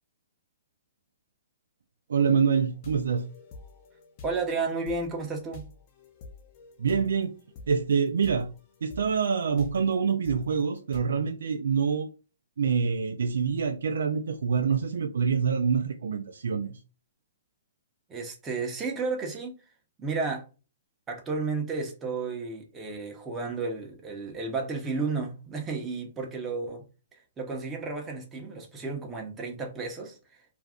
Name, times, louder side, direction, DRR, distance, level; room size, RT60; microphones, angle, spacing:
voice 1, 2.1-3.3 6.8-7.4 7.7-8.5 8.8-12.1 12.6-16.8, right 6 dB, 80° right, 0.3 m, -26 dB
sound 1, 2.7-11.0, left 3 dB, 35° left, 0.6 m, -48 dB
voice 2, 4.2-5.6 18.1-19.5 20.0-20.4 21.1-26.8 27.1-30.2, right 4 dB, 15° right, 0.7 m, -32 dB
2.5 x 2.2 x 3.5 m
hypercardioid pair, 150°, 0 cm